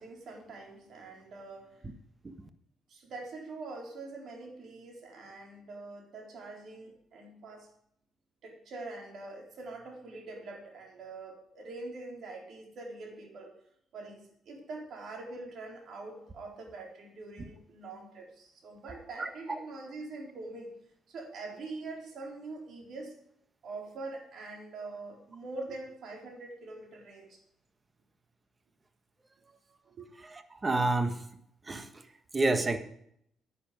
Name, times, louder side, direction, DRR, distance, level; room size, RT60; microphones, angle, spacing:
voice 1, 0.0-1.9 2.9-7.7 8.4-13.6 13.9-20.7 21.1-23.1 23.6-27.4 29.9-30.1, right 3 dB, 65° right, 1 dB, 4.0 m, -44 dB
voice 2, 30.3-31.2 31.7-31.9 32.3-32.8, right 2 dB, 25° right, 8 dB, 1.4 m, -28 dB
10.5 x 10.0 x 5.1 m, 0.70 s
cardioid pair, 90°, 0 cm